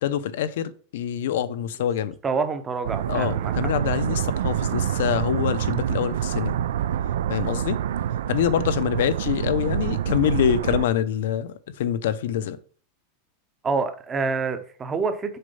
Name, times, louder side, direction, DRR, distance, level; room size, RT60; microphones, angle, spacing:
voice 1, 0.0-2.2 3.1-6.6 7.3-7.8 8.3-12.6, left 10 dB, 65° left, 0.7 m, -25 dB
voice 2, 2.2-3.7 13.6-15.4, right 4 dB, 15° right, 0.7 m, -27 dB
sound 1, 2.8-10.9, right 10 dB, 85° right, 0.4 m, -26 dB
6.7 x 4.3 x 5.4 m
supercardioid pair, 175°, 0 cm